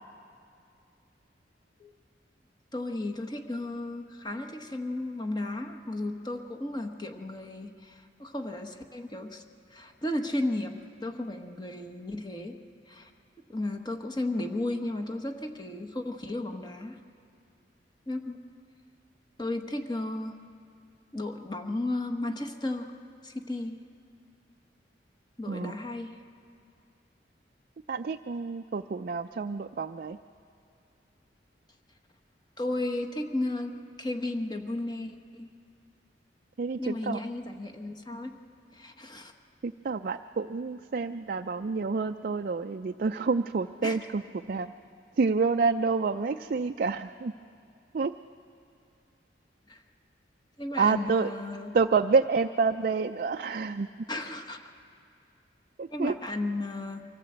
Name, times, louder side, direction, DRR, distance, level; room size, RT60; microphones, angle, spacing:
voice 1, 2.7-9.4 9.7-10.7 11.0-12.6 12.9-13.1 13.5-17.0 18.1-18.4 19.4-20.4 21.1-22.9 23.2-23.8 25.4-26.2 32.6-35.5 36.8-38.3 38.7-39.3 43.8-44.0 49.7-49.8 50.6-51.8 54.1-54.6 55.9-57.0, left 2 dB, 25° left, 5 dB, 1.2 m, -34 dB
voice 2, 27.9-30.2 36.6-37.2 39.6-44.7 45.2-47.3 47.9-48.1 50.8-51.3 51.7-53.9 55.8-56.2, right 4 dB, 50° right, 6 dB, 0.4 m, -28 dB
24.5 x 15.5 x 8.0 m, 2.5 s
head